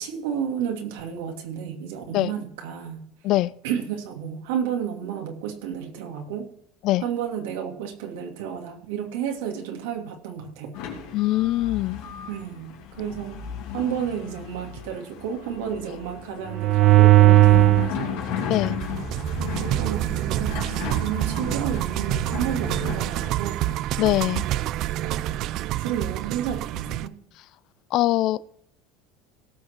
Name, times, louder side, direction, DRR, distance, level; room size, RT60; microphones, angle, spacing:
voice 1, 0.0-3.0 3.6-6.5 7.0-10.8 12.0-13.4 13.7-18.2 19.4-23.8 25.0-25.4 25.8-27.1, right 8 dB, 85° right, 2.5 m, -32 dB
sound 1, 10.7-23.7, left 7 dB, 75° left, 2.9 m, -35 dB
voice 2, 11.1-12.0 18.5-18.8 24.0-24.4 27.9-28.5, left 16 dB, 60° left, 0.5 m, -22 dB
sound 2, 16.5-17.9 18.5-27.1, right 15 dB, 60° right, 0.5 m, -22 dB
17.0 x 6.4 x 4.6 m
supercardioid pair, 110°, 0 cm